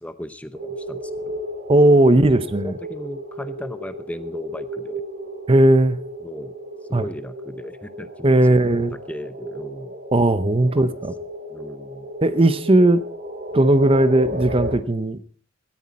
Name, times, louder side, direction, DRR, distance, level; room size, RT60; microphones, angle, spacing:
voice 1, 0.0-1.4 2.6-5.0 6.2-6.5 6.9-9.9 10.7-10.8 11.5-12.1, equal, 5° left, 11 dB, 0.8 m, -36 dB
sound 1, 0.5-14.7, right 1 dB, 45° right, 2.6 m, -34 dB
voice 2, 1.7-2.7 5.5-6.0 6.9-7.0 8.2-8.9 10.1-11.1 12.2-13.0 13.5-15.3, right 1 dB, 30° right, 13 dB, 0.7 m, -17 dB
18.0 x 13.5 x 4.2 m, 0.41 s
head